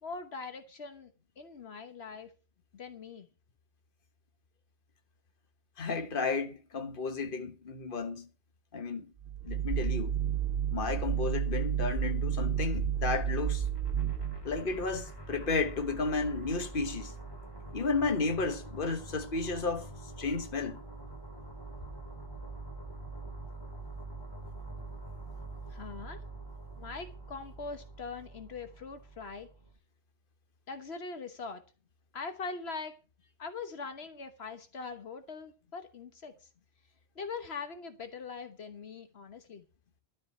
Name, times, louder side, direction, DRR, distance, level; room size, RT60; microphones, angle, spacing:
voice 1, 0.0-1.1 1.4-2.3 2.7-3.3 25.7-26.2 26.8-29.5 30.7-31.6 32.1-33.0 33.4-36.3 37.1-39.6, left 4 dB, 80° left, 1.5 m, -42 dB
voice 2, 5.8-8.3 8.7-9.1 9.4-10.1 10.7-13.7 14.4-17.1 17.7-19.9 20.2-20.8, left 4 dB, 55° left, 1.5 m, -32 dB
sound 1, 9.2-14.7, right 8 dB, 65° right, 0.9 m, -31 dB
sound 2, 13.5-29.7, right 2 dB, 25° left, 2.7 m, -45 dB
12.5 x 5.2 x 8.3 m
omnidirectional pair, 1.1 m